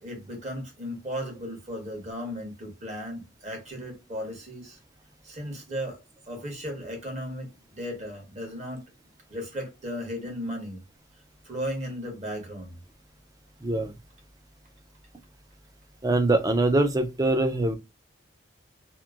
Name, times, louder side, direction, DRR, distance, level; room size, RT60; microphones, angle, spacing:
voice 1, 0.0-4.8 5.2-6.0 6.3-8.8 9.3-10.8 11.4-12.7, equal, 35° right, 1.3 m, -35 dB
voice 2, 13.6-13.9 16.0-17.7, right 2 dB, 20° right, 0.4 m, -23 dB
2.9 x 2.6 x 2.4 m
head